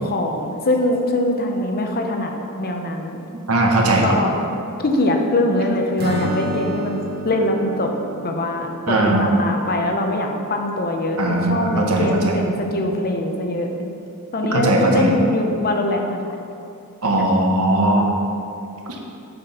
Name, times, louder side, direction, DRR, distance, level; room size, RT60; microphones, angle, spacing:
voice 1, 0.0-3.2 4.0-4.4 4.8-7.0 7.2-7.9 8.2-13.9 14.3-16.3, left 1 dB, 45° left, 3 dB, 0.8 m, -22 dB
voice 2, 3.5-4.1 8.9-9.4 11.2-12.4 14.4-15.1 17.0-18.1, right 2 dB, 70° right, 0 dB, 1.2 m, -18 dB
Acoustic guitar / Strum, 6.0-9.9, right 1 dB, 45° right, 1.2 m, -30 dB
7.9 x 5.2 x 5.8 m, 2.6 s
head